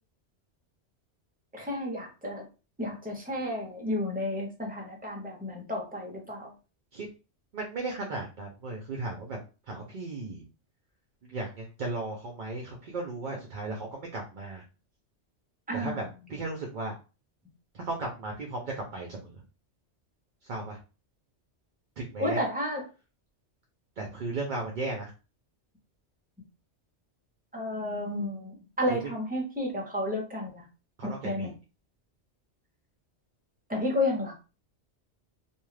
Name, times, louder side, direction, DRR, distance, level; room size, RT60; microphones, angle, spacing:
voice 1, 1.5-2.5 2.8-6.5 15.7-16.0 22.2-22.8 27.5-30.6 31.0-31.5 33.7-34.3, left 1 dB, 10° right, 0 dB, 0.7 m, -31 dB
voice 2, 7.5-9.4 9.7-10.4 11.2-14.6 15.7-16.0 16.3-16.9 17.7-19.4 20.4-20.8 22.0-22.4 24.0-25.1 28.9-29.1 31.0-31.5, right 2 dB, 55° right, 0 dB, 0.6 m, -35 dB
2.6 x 2.3 x 3.1 m, 0.32 s
omnidirectional pair, 1.2 m